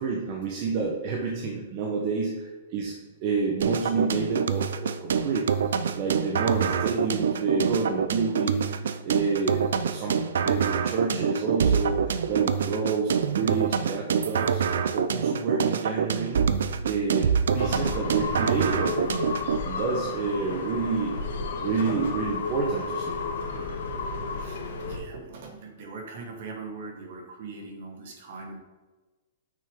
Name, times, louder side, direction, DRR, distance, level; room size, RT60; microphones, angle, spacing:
voice 1, 0.0-2.9 3.2-5.5 5.9-10.2 10.4-16.4 16.8-19.1 19.6-21.1 21.6-23.2, right 4 dB, 30° right, -2 dB, 1.0 m, -29 dB
sound 1, 3.6-19.6, right 6 dB, 75° right, 0.5 m, -26 dB
sound 2, 17.6-25.0, left 4 dB, 80° left, 1.8 m, -32 dB
voice 2, 24.0-28.6, right 3 dB, 45° right, 3 dB, 1.6 m, -41 dB
8.8 x 6.3 x 3.7 m, 1.2 s
hypercardioid pair, 175°, 0 cm